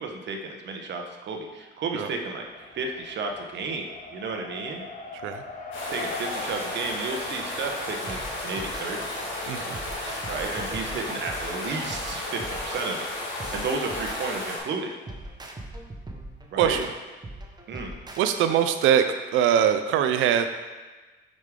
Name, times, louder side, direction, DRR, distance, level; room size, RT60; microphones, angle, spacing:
voice 1, 0.0-3.9 4.1-4.8 5.9-8.2 8.4-9.1 10.3-13.0 13.5-14.9 16.5-16.8 17.7-17.9, right 4 dB, 65° right, 3 dB, 1.0 m, -32 dB
Race car auto racing, 2.4-10.6, left 3 dB, 40° left, 0.9 m, -42 dB
sound 1, 5.7-14.6, left 1 dB, 80° left, 1.9 m, -34 dB
sound 2, 8.1-18.3, right 1 dB, 20° right, 0.9 m, -41 dB
voice 2, 9.5-9.8 16.6-16.9 18.2-19.1 19.3-20.5, right 9 dB, 90° right, 8 dB, 0.4 m, -22 dB
6.4 x 5.2 x 3.7 m, 1.3 s
cardioid pair, 90°, 20 cm